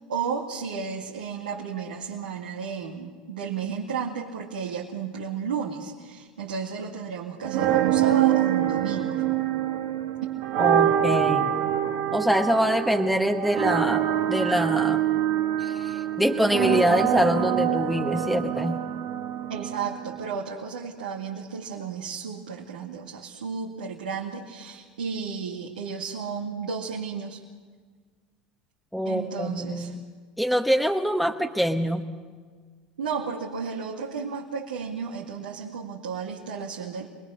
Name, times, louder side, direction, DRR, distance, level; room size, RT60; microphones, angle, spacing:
voice 1, 0.1-9.1 19.5-27.4 29.0-30.0 33.0-37.1, right 6 dB, 85° right, -3 dB, 2.4 m, -33 dB
sound 1, 7.4-20.4, right 11 dB, 65° right, 1.7 m, -25 dB
voice 2, 10.6-11.5 12.1-15.0 15.6-18.8 28.9-30.0 30.4-32.0, equal, ahead, 4 dB, 1.3 m, -24 dB
27.0 x 20.5 x 6.5 m, 1.5 s
hypercardioid pair, 80°, 5 cm